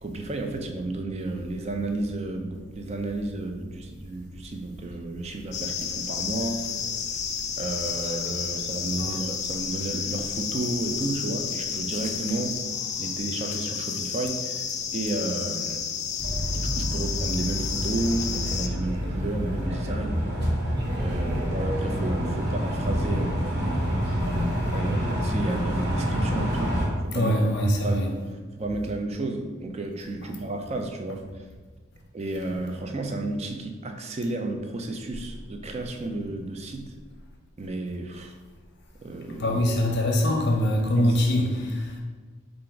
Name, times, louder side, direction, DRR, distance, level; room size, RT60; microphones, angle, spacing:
voice 1, 0.0-6.7 7.6-12.6 13.0-15.9 16.5-20.3 20.9-24.0 24.7-27.3 27.8-28.1 28.6-31.4 32.1-37.0 37.6-38.4 39.0-39.6 41.0-41.2, right 2 dB, 30° right, 4 dB, 0.4 m, -32 dB
sound 1, 5.5-18.7, left 7 dB, 35° left, 0.3 m, -31 dB
voice 2, 8.0-8.4 9.0-9.2 27.1-28.1 39.4-41.9, left 1 dB, 60° left, 1 dB, 0.7 m, -24 dB
sound 2, 16.2-26.9, equal, 55° right, 1.0 m, -27 dB
4.4 x 2.5 x 3.8 m, 1.4 s
head